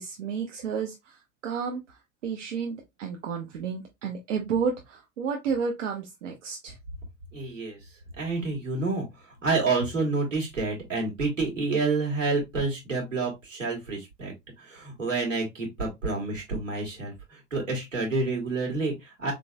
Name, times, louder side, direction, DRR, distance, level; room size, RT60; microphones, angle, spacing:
voice 1, 0.0-6.8, right 6 dB, 75° right, 0.8 m, -32 dB
voice 2, 7.3-7.8 8.2-9.1 9.4-14.3 14.6-19.3, right 3 dB, 90° right, 1.8 m, -28 dB
4.0 x 3.8 x 2.3 m
figure-of-eight pair, 80°, 37 cm